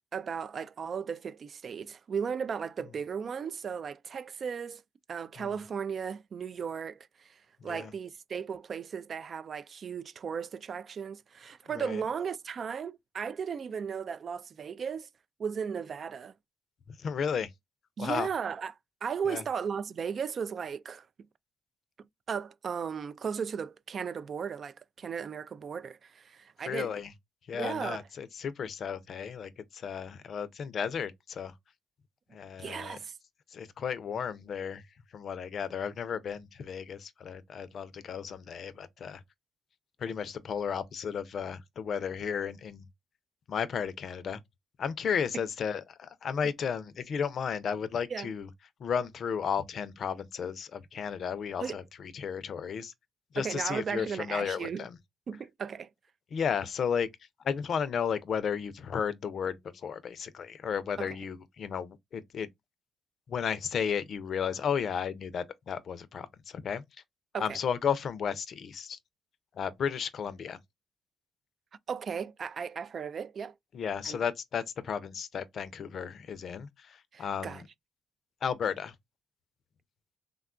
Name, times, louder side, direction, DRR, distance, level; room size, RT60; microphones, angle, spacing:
voice 1, 0.1-4.8 5.1-15.1 15.4-16.3 18.0-18.7 19.0-21.1 22.3-26.9 27.5-28.0 32.6-33.1 48.1-48.3 51.6-51.8 53.4-54.9 55.3-55.9 61.0-61.2 67.3-67.6 71.9-73.5 74.0-74.2 77.1-77.6, right 6 dB, 50° right, 0.3 m, -36 dB
voice 2, 7.6-7.9 11.7-12.0 16.9-17.5 18.0-18.3 19.3-19.4 26.7-27.1 27.5-31.5 32.3-33.0 33.5-34.8 35.1-39.2 40.0-42.8 43.5-44.4 44.8-48.5 48.8-52.9 53.3-55.0 56.3-57.1 57.4-62.5 63.3-66.8 67.4-69.0 69.5-70.6 73.7-77.7 78.4-78.9, left 7 dB, 55° left, 0.5 m, -34 dB
3.5 x 2.3 x 2.4 m
cardioid pair, 90°, 0 cm